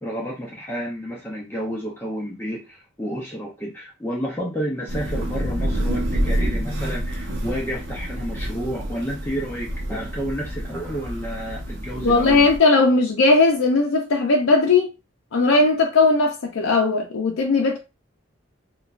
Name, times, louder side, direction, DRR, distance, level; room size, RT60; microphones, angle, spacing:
voice 1, 0.0-12.5, equal, 10° left, 0.6 m, -30 dB
Thunder / Rain, 4.9-12.6, right 1 dB, 75° right, 0.7 m, -28 dB
voice 2, 12.0-14.9 15.3-17.8, left 3 dB, 90° left, 0.5 m, -18 dB
3.0 x 2.3 x 2.4 m
head